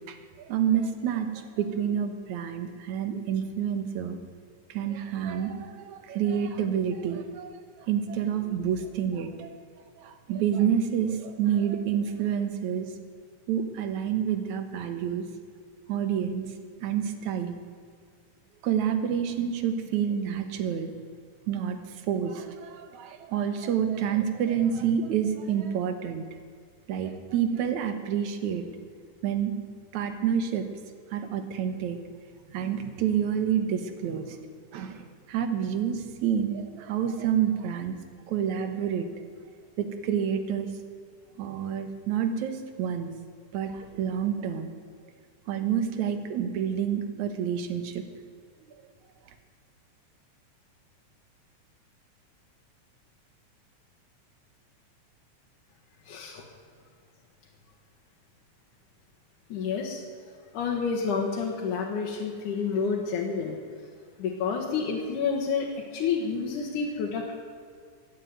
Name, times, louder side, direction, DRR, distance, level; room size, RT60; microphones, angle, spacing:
voice 1, 0.1-4.2 4.7-9.5 10.0-12.9 13.5-15.3 15.9-16.5 16.8-17.6 18.6-20.9 21.5-26.2 26.9-28.7 29.2-29.6 29.9-30.7 31.1-32.0 32.5-38.0 38.3-39.1 39.8-40.7 41.4-43.1 43.5-44.7 45.5-48.0, right 8 dB, 70° right, 8 dB, 2.6 m, -28 dB
voice 2, 56.1-56.4 59.5-60.0 60.5-63.6 64.2-67.4, left 5 dB, 85° left, -1 dB, 3.0 m, -29 dB
16.0 x 8.6 x 9.3 m, 2.2 s
omnidirectional pair, 3.5 m